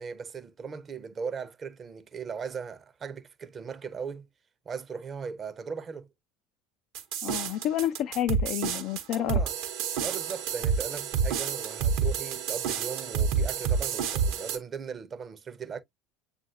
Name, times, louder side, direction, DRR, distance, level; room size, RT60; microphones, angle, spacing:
voice 1, 0.0-4.3 4.7-6.1 9.1-9.5 10.0-15.8, right 6 dB, 35° right, 0.7 m, -38 dB
sound 1, 6.9-14.6, right 6 dB, 60° right, 0.8 m, -29 dB
voice 2, 7.2-9.4, left 12 dB, 55° left, 0.3 m, -29 dB
7.3 x 2.5 x 2.7 m
figure-of-eight pair, 70°, 0 cm